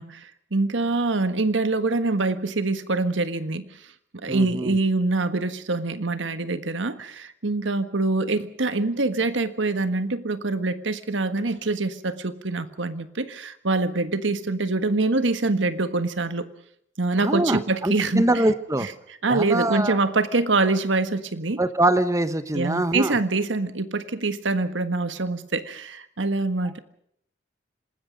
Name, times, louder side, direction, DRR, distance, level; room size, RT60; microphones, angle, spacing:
voice 1, 0.0-3.7 4.1-16.5 17.0-18.3 18.8-18.9 19.2-21.6 22.5-26.8, right 3 dB, 90° right, 11 dB, 1.5 m, -25 dB
voice 2, 4.3-4.8 17.2-18.9 19.3-20.0 21.6-23.2, right 1 dB, 15° right, 12 dB, 1.0 m, -23 dB
27.0 x 19.5 x 5.2 m, 0.68 s
head